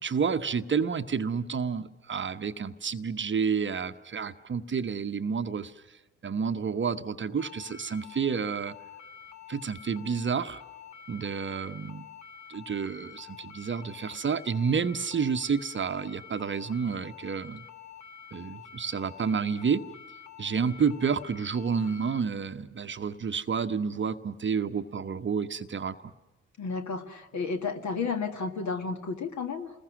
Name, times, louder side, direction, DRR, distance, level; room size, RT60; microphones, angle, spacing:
voice 1, 0.0-5.7 6.2-8.8 9.5-10.6 11.1-12.1 12.5-17.6 18.3-19.8 20.4-26.0, right 6 dB, 35° right, 9 dB, 1.0 m, -30 dB
sound 1, 7.4-22.2, left 8 dB, 75° left, 1.7 m, -48 dB
voice 2, 26.6-29.7, left 4 dB, 50° left, 6 dB, 1.9 m, -32 dB
29.5 x 21.0 x 6.0 m, 1.2 s
figure-of-eight pair, 40°, 36 cm